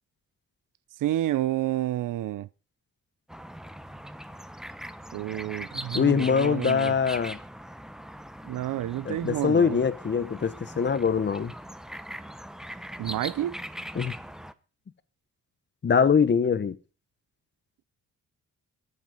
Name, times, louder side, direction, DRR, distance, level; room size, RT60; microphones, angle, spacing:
voice 1, 1.0-2.5 5.1-6.9 8.4-9.8 13.0-13.6, right 13 dB, 85° right, 0.6 m, -29 dB
sound 1, 3.3-14.5, equal, ahead, 0.7 m, -41 dB
voice 2, 5.9-7.4 9.0-11.5 14.0-14.1 15.8-16.8, left 6 dB, 35° left, 1.1 m, -23 dB
21.5 x 7.5 x 5.4 m
cardioid pair, 135°, 31 cm